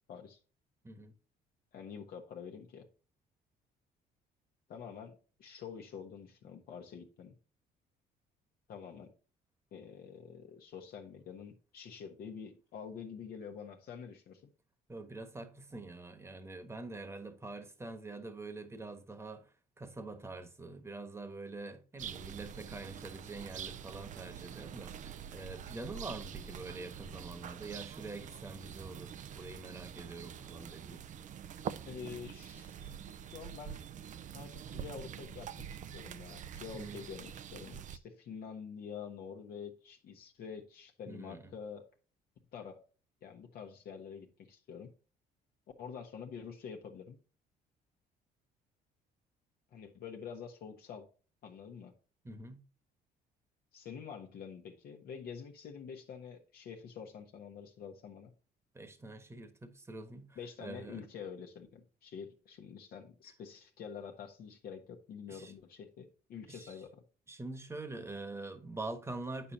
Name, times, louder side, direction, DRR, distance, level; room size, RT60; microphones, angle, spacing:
voice 1, 0.1-0.4 1.7-2.9 4.7-7.3 8.7-9.1 9.7-14.5 31.9-32.9 33.3-33.8 34.3-41.8 42.5-42.8 43.2-44.9 45.8-47.2 49.7-51.1 51.4-51.9 53.7-58.3 60.3-67.0, left 7 dB, 65° left, 1.2 m, -47 dB
voice 2, 14.9-19.5 19.8-31.0 36.7-37.0 41.1-41.5 52.2-52.6 58.7-61.0 65.3-65.6 66.5-66.8 67.3-69.5, right 2 dB, 15° right, 1.3 m, -45 dB
sound 1, 22.0-38.0, right 9 dB, 45° right, 0.5 m, -45 dB
8.6 x 6.7 x 2.8 m
cardioid pair, 110°, 17 cm